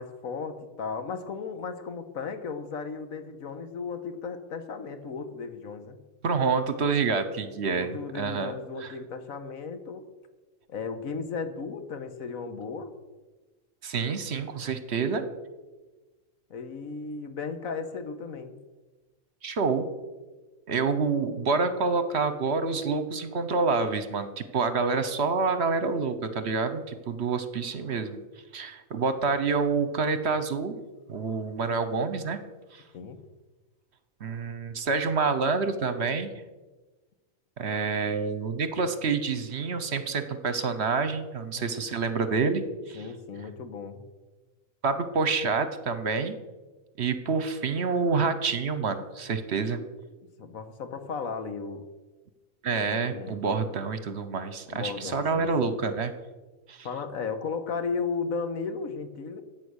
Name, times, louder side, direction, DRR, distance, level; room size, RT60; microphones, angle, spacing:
voice 1, 0.0-6.0 7.8-10.1 10.7-12.9 16.5-18.6 32.9-33.2 41.5-41.7 42.9-44.0 50.4-51.8 52.9-53.4 54.7-55.7 56.8-59.4, left 5 dB, 85° left, 9 dB, 1.6 m, -35 dB
voice 2, 6.2-8.5 8.8-8.9 13.8-15.2 19.4-19.9 20.7-28.2 28.5-30.8 31.1-32.4 32.7-32.8 34.2-36.3 37.6-43.0 44.8-46.4 47.0-49.8 52.6-56.1 56.7-56.9, right 4 dB, 55° right, 11 dB, 1.2 m, -27 dB
14.0 x 9.1 x 6.4 m, 1.2 s
omnidirectional pair, 1.4 m